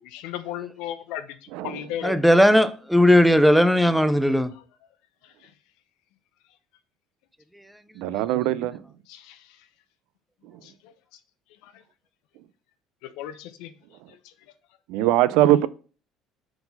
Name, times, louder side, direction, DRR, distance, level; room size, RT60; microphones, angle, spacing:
voice 1, 0.0-2.2 4.5-4.6 5.2-5.5 9.1-9.7 10.6-10.9 11.6-11.8 13.0-13.7 14.1-14.3, left 11 dB, 75° left, 0.6 m, -37 dB
voice 2, 2.0-4.5, equal, ahead, 0.3 m, -17 dB
voice 3, 8.0-8.8 14.9-15.7, right 14 dB, 75° right, 0.3 m, -21 dB
4.6 x 3.9 x 5.2 m
cardioid pair, 160°, 0 cm